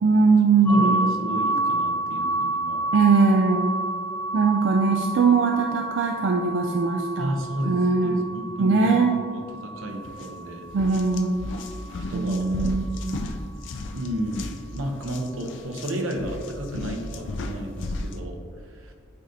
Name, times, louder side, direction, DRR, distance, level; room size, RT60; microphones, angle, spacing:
voice 1, 0.0-1.2 2.9-3.7 4.3-7.3 7.7-8.2 8.6-9.1 10.7-11.5 12.1-13.2, right 4 dB, 60° right, 2 dB, 0.4 m, -21 dB
sound 1, 0.7-12.4, right 2 dB, 10° left, 0.5 m, -30 dB
voice 2, 0.7-2.8 7.2-8.9 9.6-10.7 11.8-12.5 13.9-18.9, equal, 85° right, 2 dB, 0.8 m, -32 dB
sound 2, 10.1-10.3 10.7-18.2, left 2 dB, 60° left, 0.4 m, -34 dB
8.8 x 3.9 x 2.7 m, 2.2 s
head